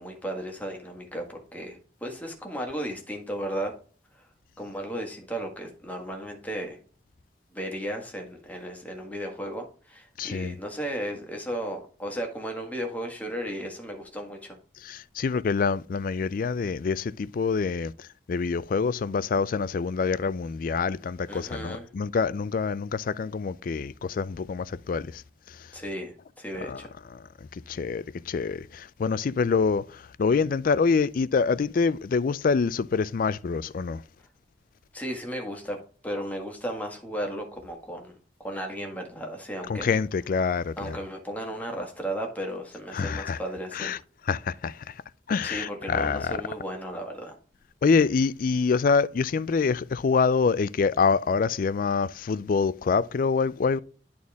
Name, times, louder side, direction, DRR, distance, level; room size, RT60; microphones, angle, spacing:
voice 1, 0.0-3.7 4.1-4.2 4.6-6.8 7.5-14.6 21.3-21.9 25.7-26.9 34.9-35.8 36.0-39.9 40.8-43.9 45.4-47.4, equal, 10° left, 1.7 m, -35 dB
voice 2, 10.2-10.6 14.8-25.2 25.5-25.7 26.6-26.8 27.1-27.2 27.5-34.0 39.7-41.0 42.9-43.4 43.7-44.0 44.3-45.0 45.3-46.4 47.8-53.8, left 5 dB, 50° left, 0.4 m, -26 dB
11.0 x 4.3 x 3.5 m
head